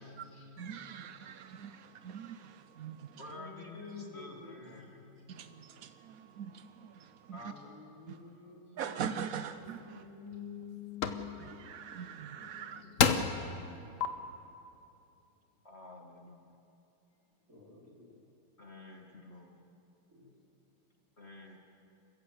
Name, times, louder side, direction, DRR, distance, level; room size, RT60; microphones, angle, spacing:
voice 1, 0.0-1.1 3.3-5.4 7.4-9.2 9.6-13.6 17.5-18.1 20.1-20.3, left 6 dB, 40° right, -4 dB, 4.7 m, -50 dB
voice 2, 0.6-3.2 5.3-7.4 8.1-8.2 8.8-10.0 11.4-12.8, right 8 dB, 75° right, 10 dB, 0.8 m, -42 dB
voice 3, 3.2-5.0 7.3-7.8 8.2-8.5 12.8-13.2 15.6-16.5 18.6-19.6 21.2-21.6, left 2 dB, 30° left, 1 dB, 1.9 m, -51 dB
sound 1, 9.6-9.7 10.3-10.6 11.0-11.2 12.4-12.5 13.0-13.4 14.0-14.1, left 6 dB, 50° left, 1.1 m, -28 dB
28.0 x 15.0 x 8.0 m, 2.8 s
omnidirectional pair, 2.3 m